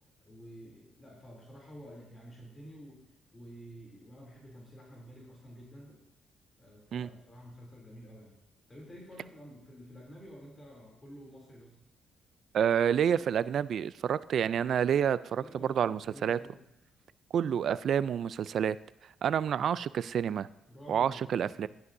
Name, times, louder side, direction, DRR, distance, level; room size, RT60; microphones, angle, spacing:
voice 1, 0.2-3.0 3.3-6.0 6.6-8.4 8.7-11.8 15.3-16.6 20.7-21.7, equal, 25° left, -2 dB, 3.0 m, -50 dB
voice 2, 12.5-16.4 17.3-18.8 19.2-20.5 20.9-21.7, right 8 dB, 60° right, 18 dB, 0.3 m, -28 dB
12.5 x 10.5 x 2.7 m, 0.88 s
cardioid pair, 90°, 0 cm